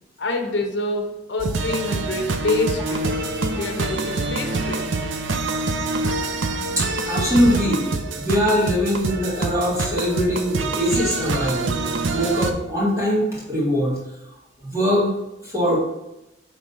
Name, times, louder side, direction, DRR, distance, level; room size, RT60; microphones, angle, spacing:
voice 1, 0.2-3.1 3.6-4.9, left 2 dB, 75° left, 4 dB, 1.0 m, -26 dB
sound 1, 1.4-12.5, right 3 dB, 85° right, 0.6 m, -26 dB
voice 2, 6.8-7.9 8.1-11.8 12.1-14.0 14.6-15.1 15.4-15.8, equal, 15° right, -6 dB, 1.9 m, -22 dB
5.2 x 3.8 x 5.6 m, 0.91 s
head